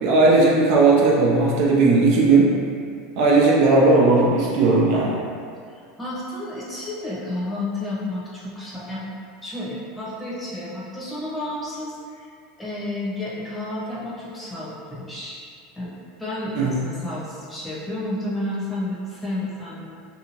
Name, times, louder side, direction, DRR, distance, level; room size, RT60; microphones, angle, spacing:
voice 1, 0.0-2.5 3.2-5.2 16.6-16.7, right 3 dB, 65° right, -4 dB, 0.5 m, -16 dB
voice 2, 5.7-9.1 9.4-12.3 12.6-15.4 15.8-15.9 16.2-19.9, left 1 dB, 15° left, -8 dB, 0.9 m, -31 dB
2.7 x 2.4 x 2.9 m, 2.3 s
hypercardioid pair, 100°, 0 cm